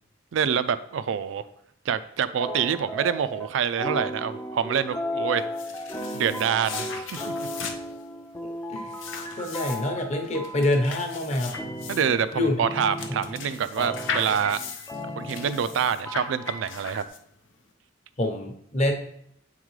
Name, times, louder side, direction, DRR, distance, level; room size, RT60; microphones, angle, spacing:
voice 1, 0.3-1.5 1.9-5.5 6.1-7.2 11.9-14.6 15.2-17.0, right 7 dB, 75° right, 14 dB, 0.3 m, -26 dB
sound 1, 2.4-3.5 3.8-11.0 11.5-17.1, equal, 15° left, 0.3 m, -35 dB
sound 2, 5.4-17.5, left 5 dB, 80° left, 0.6 m, -38 dB
voice 2, 8.4-8.9 9.3-11.5 12.3-12.6 18.2-18.9, left 1 dB, 35° left, 3 dB, 0.8 m, -26 dB
8.0 x 3.7 x 3.1 m, 0.73 s
head